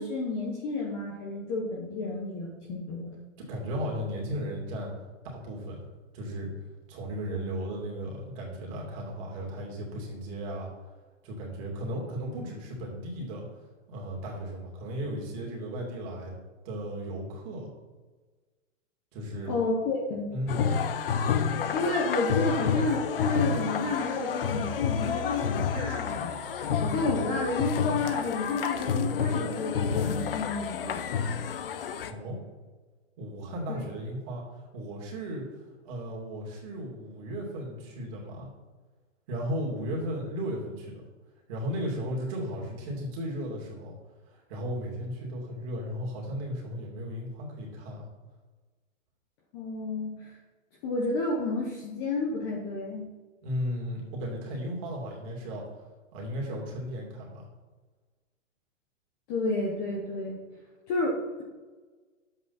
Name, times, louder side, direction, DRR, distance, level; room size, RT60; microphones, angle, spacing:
voice 1, 0.0-3.2 19.4-20.3 21.7-26.3 26.8-31.0 33.7-33.8 49.5-50.3 50.8-53.1 59.3-60.4 60.9-61.4, left 2 dB, 15° left, -2 dB, 0.8 m, -31 dB
voice 2, 3.4-4.9 5.2-5.9 6.1-6.5 6.9-10.7 11.2-13.5 13.9-16.4 16.6-17.7 19.1-19.5 20.3-20.8 32.0-32.4 33.2-35.5 35.8-38.5 39.3-41.0 41.5-43.9 44.3-48.1 53.4-55.6 56.1-57.5, equal, 25° right, -2 dB, 2.7 m, -35 dB
sound 1, 20.5-32.1, left 6 dB, 45° left, 0.8 m, -29 dB
10.5 x 7.9 x 4.1 m, 1.3 s
hypercardioid pair, 170°, 38 cm